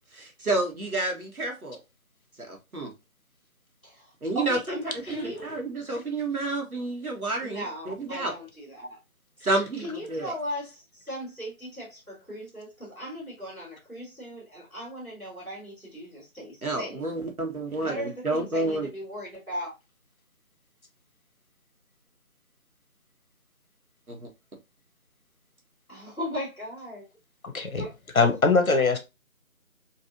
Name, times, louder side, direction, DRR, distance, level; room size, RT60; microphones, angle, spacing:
voice 1, 0.1-1.8 2.4-2.9 4.2-4.8 5.1-8.3 9.4-10.3 16.6-18.9 24.1-24.3, right 2 dB, 90° right, 1.4 m, -30 dB
voice 2, 4.3-5.6 7.4-9.0 9.8-17.0 17.8-19.7 25.9-27.0 27.6-27.9, equal, 5° left, 1.8 m, -37 dB
voice 3, 27.4-27.9 28.1-29.0, left 4 dB, 75° left, 1.0 m, -22 dB
4.1 x 2.6 x 2.6 m
figure-of-eight pair, 160°, 42 cm